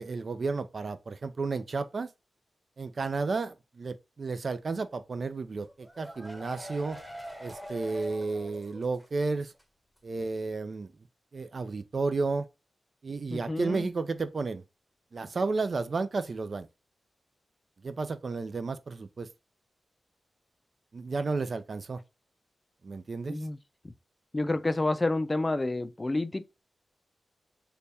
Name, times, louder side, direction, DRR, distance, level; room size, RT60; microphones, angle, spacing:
voice 1, 0.0-2.1 2.8-7.0 7.4-9.5 10.0-10.9 11.3-12.5 13.0-14.6 15.1-16.7 17.8-19.3 20.9-22.0 22.8-23.4, right 3 dB, 55° right, 0.4 m, -32 dB
sound 1, 5.6-9.2 9.5-9.6 10.0-10.1, equal, 5° right, 1.0 m, -43 dB
voice 2, 13.3-13.9 23.3-23.6 23.8-23.9 24.3-26.4, left 2 dB, 30° left, 0.4 m, -29 dB
3.4 x 2.3 x 4.0 m
cardioid pair, 50°, 0 cm